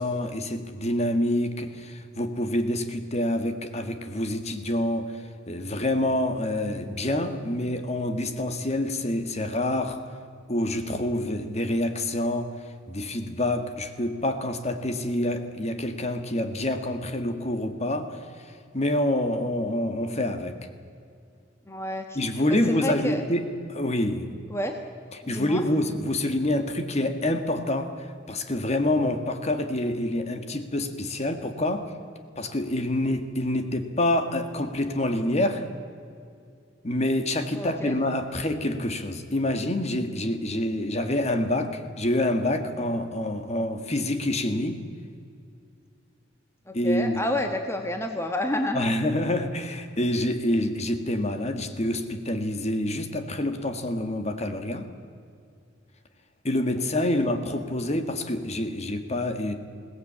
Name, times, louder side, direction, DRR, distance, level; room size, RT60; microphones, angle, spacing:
voice 1, 0.0-5.1 5.5-10.0 10.5-12.5 12.9-20.6 22.1-23.4 23.7-24.3 25.3-31.9 32.4-35.7 36.8-44.8 46.7-47.2 48.7-54.9 56.4-59.5, left 1 dB, 35° left, 8 dB, 1.7 m, -27 dB
voice 2, 21.7-23.2 24.5-24.8 25.2-25.6 37.5-38.0 46.7-48.9 57.0-57.2, left 1 dB, 15° left, 4 dB, 1.3 m, -30 dB
21.5 x 18.0 x 8.7 m, 2.3 s
head